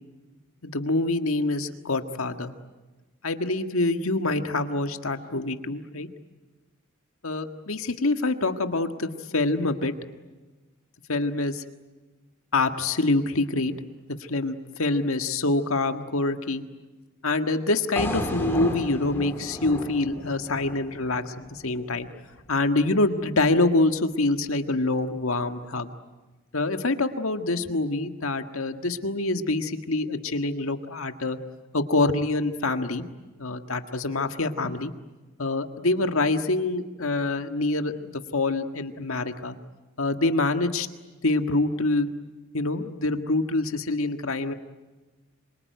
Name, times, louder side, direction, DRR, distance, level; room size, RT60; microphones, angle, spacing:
voice 1, 0.6-2.5 3.2-6.1 7.2-9.9 11.1-11.6 12.5-13.8 14.3-16.6 17.2-22.1 22.5-25.9 26.5-31.4 31.7-33.1 33.4-34.9 35.4-39.6 40.0-40.9 41.2-42.1 42.5-44.5, left 2 dB, 90° left, 7 dB, 1.7 m, -26 dB
sound 1, 18.0-22.1, left 1 dB, 10° left, 3.2 m, -33 dB
26.5 x 24.0 x 9.4 m, 1.2 s
head